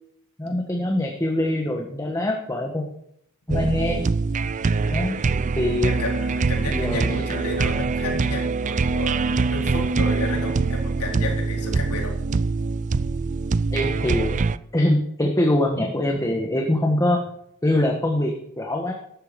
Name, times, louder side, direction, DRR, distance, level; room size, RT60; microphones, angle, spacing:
voice 1, 0.4-2.8 3.5-4.0 4.8-5.2 5.6-6.1 6.7-7.3 13.7-14.4 14.7-17.2 17.6-18.9, left 1 dB, 15° left, 1 dB, 1.4 m, -23 dB
sound 1, 3.5-14.6, right 4 dB, 35° right, 0.4 m, -24 dB
voice 2, 4.6-5.1 5.8-12.1, left 2 dB, 90° left, 0 dB, 4.1 m, -32 dB
14.0 x 11.0 x 5.3 m, 0.74 s
head